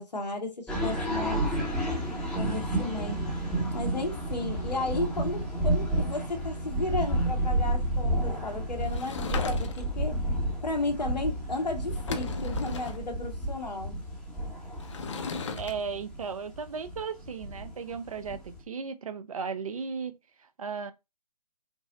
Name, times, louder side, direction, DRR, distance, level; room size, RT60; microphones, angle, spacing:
voice 1, 0.0-1.5 2.3-3.2 3.7-10.2 10.6-14.0, left 2 dB, 75° left, 1.5 m, -34 dB
sound 1, 0.7-18.6, right 1 dB, ahead, 0.8 m, -31 dB
Sliding door / Wood, 8.8-10.0 11.5-11.6 11.9-13.0 14.8-15.7, left 5 dB, 45° left, 0.7 m, -36 dB
voice 2, 15.5-20.1 20.6-20.9, right 5 dB, 55° right, 0.7 m, -35 dB
5.4 x 2.1 x 3.8 m
figure-of-eight pair, 145°, 21 cm